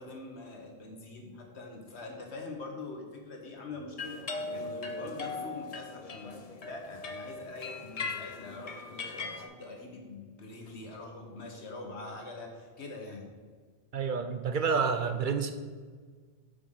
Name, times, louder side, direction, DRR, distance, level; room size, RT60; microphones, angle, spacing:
voice 1, 0.0-4.2 4.5-13.3, left 3 dB, 85° left, 2 dB, 1.7 m, -44 dB
sound 1, 4.0-9.4, left 3 dB, 40° left, 0.8 m, -39 dB
voice 2, 13.9-15.5, right 5 dB, 55° right, 8 dB, 0.7 m, -29 dB
7.1 x 5.5 x 6.5 m, 1.5 s
omnidirectional pair, 1.1 m